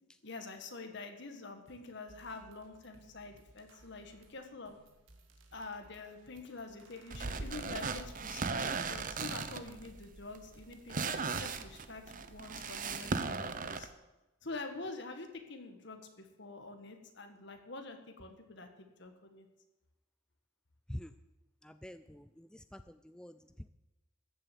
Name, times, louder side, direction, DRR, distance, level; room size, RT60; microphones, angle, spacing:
voice 1, 0.2-4.8 5.5-13.9 14.4-19.5, left 3 dB, 60° left, 6 dB, 1.8 m, -46 dB
sound 1, 1.7-1.8 2.1-8.5, right 2 dB, 80° right, 2.0 m, -62 dB
sound 2, 7.1-13.9, right 4 dB, 45° right, 0.8 m, -37 dB
voice 2, 21.6-23.4, equal, 5° left, 11 dB, 0.3 m, -46 dB
14.0 x 7.5 x 8.2 m, 1.0 s
head